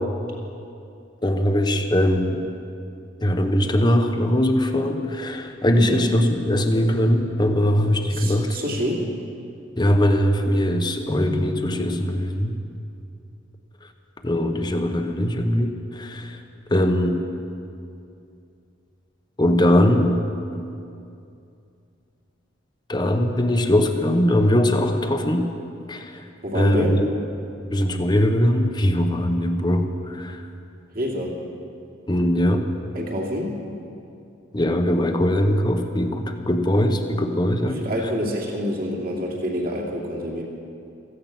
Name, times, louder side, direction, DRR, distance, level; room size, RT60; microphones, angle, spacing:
voice 1, 1.2-2.4 3.2-8.6 9.8-12.5 14.2-16.4 16.7-17.2 19.4-20.2 22.9-25.5 25.9-26.2 26.5-27.1 27.7-30.4 32.1-32.6 34.5-37.8, left 1 dB, 20° left, 6 dB, 1.0 m, -21 dB
voice 2, 5.7-6.1 8.1-9.1 11.1-11.3 26.4-27.0 30.9-31.4 32.9-33.6 37.7-40.4, equal, 50° right, -3 dB, 2.7 m, -27 dB
16.0 x 15.0 x 6.0 m, 2.6 s
head